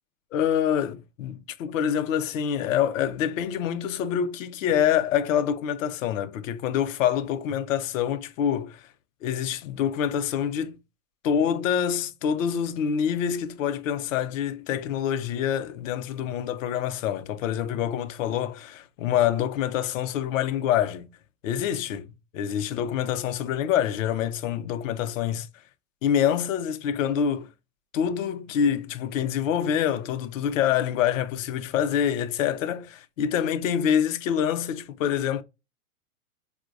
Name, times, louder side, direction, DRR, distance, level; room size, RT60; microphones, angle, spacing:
voice 1, 0.3-8.9 9.2-10.8 11.2-21.1 21.4-22.1 22.3-25.5 26.0-27.5 27.9-35.4, left 9 dB, 60° left, 0.5 m, -26 dB
4.4 x 2.2 x 2.4 m
hypercardioid pair, 130°, 44 cm